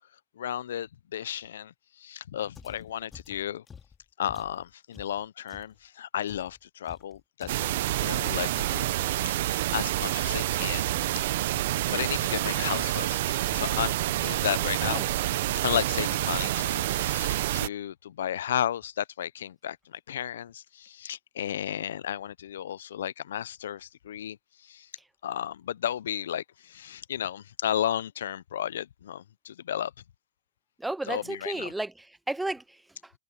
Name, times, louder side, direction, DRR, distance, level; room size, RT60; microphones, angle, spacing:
voice 1, 0.4-1.7 2.0-3.6 4.2-10.8 11.1-11.3 11.8-15.0 15.6-24.4 24.7-24.9 25.2-29.9 31.1-31.7, left 10 dB, 80° left, 0.7 m, -33 dB
sound 1, 2.6-5.8 6.3-10.7 10.9-13.1 13.5-13.9 14.1-14.5 14.8-15.2 15.4-15.8, left 6 dB, 25° left, 2.3 m, -50 dB
sound 2, 7.5-17.7, right 15 dB, 70° right, 1.0 m, -28 dB
voice 2, 30.8-33.1, right 2 dB, 10° right, 0.6 m, -34 dB
hypercardioid pair, 85°, 0 cm